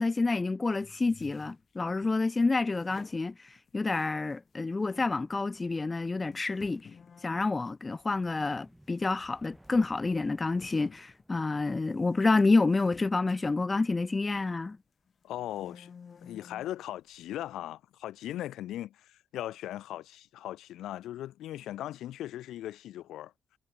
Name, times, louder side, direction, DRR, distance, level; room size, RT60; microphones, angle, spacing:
voice 1, 0.0-6.8 7.2-14.8, left 3 dB, 15° left, 0.3 m, -28 dB
sound 1, 0.7-2.2 2.7-4.5 4.8-5.2 5.8-5.9 6.3-8.6 8.9-9.3 9.6-9.7 10.6-14.6 15.1-16.8, left 6 dB, 30° left, 2.2 m, -54 dB
sound 2, 8.0-11.9, equal, ahead, 2.4 m, -60 dB
voice 2, 15.2-15.9 16.2-23.3, left 13 dB, 80° left, 1.0 m, -39 dB
cardioid pair, 165°, 0 cm